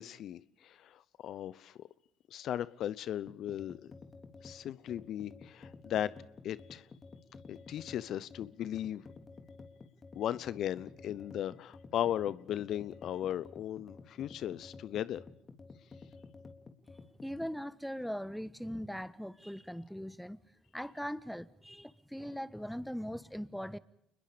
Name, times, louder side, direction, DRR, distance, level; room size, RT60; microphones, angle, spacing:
voice 1, 0.0-1.9 2.3-3.9 4.4-6.1 6.4-6.8 7.5-9.0 10.2-15.2, left 11 dB, 60° left, 0.8 m, -37 dB
sound 1, 3.3-17.6, left 4 dB, 35° left, 3.3 m, -52 dB
voice 2, 17.2-20.4 20.7-23.8, equal, ahead, 1.3 m, -40 dB
29.0 x 21.0 x 5.1 m
hypercardioid pair, 55°, 0 cm